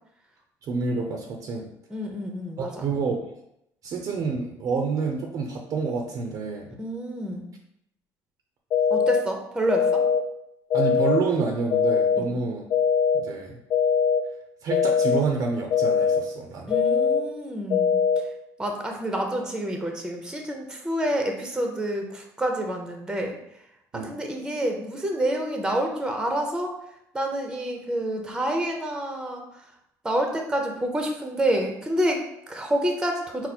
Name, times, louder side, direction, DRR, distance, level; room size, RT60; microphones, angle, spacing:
voice 1, 0.6-1.7 2.8-3.3 3.8-6.7 10.7-12.6 13.1-13.6 14.6-16.8 23.9-24.1, right 4 dB, 55° right, 2 dB, 0.6 m, -28 dB
voice 2, 1.9-2.8 6.8-7.5 8.9-10.0 12.1-12.3 16.6-18.3 18.6-23.4 23.9-26.8 27.1-29.7 30.0-33.5, right 1 dB, 10° right, 2 dB, 0.7 m, -28 dB
sound 1, 8.7-9.2 9.7-10.2 10.7-11.2 11.7-12.2 12.7-13.2 13.7-14.2 14.7-15.2 15.7-16.2 16.7-17.2 17.7-18.2, left 6 dB, 60° left, 0.4 m, -21 dB
4.1 x 2.1 x 4.2 m, 0.79 s
supercardioid pair, 100°, 7 cm